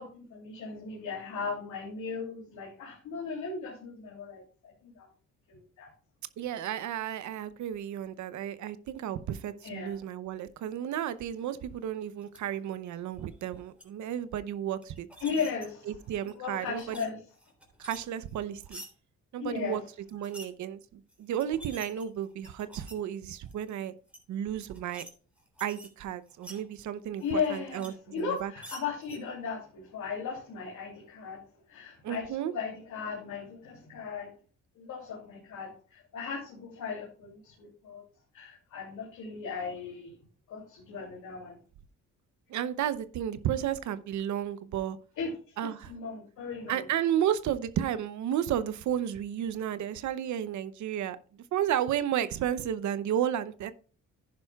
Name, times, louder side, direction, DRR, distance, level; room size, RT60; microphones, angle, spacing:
voice 1, 0.0-5.0 5.5-5.9 9.6-10.0 15.2-15.9 16.2-17.2 19.4-19.8 27.2-31.4 31.7-34.3 34.8-38.0 38.3-40.2 40.5-41.6 45.2-46.8, left 5 dB, 80° left, 2.9 m, -37 dB
voice 2, 6.4-15.1 15.9-17.1 17.8-18.8 19.3-19.8 20.1-23.9 24.3-25.0 25.6-28.5 32.0-32.5 42.5-45.0 45.6-45.9 46.7-51.2 51.5-53.7, right 10 dB, 70° right, 0.7 m, -32 dB
sound 1, 12.2-12.4 13.3-13.8 14.8-15.7 16.1-17.1 17.4-18.9 20.1-20.5 21.1-21.2 21.4-23.0 23.5-23.7 24.1-24.2 24.6-25.1 25.4-26.6 27.2-27.9 28.2-29.2, right 1 dB, 5° right, 3.2 m, -48 dB
10.5 x 10.5 x 2.3 m
cardioid pair, 90°, 30 cm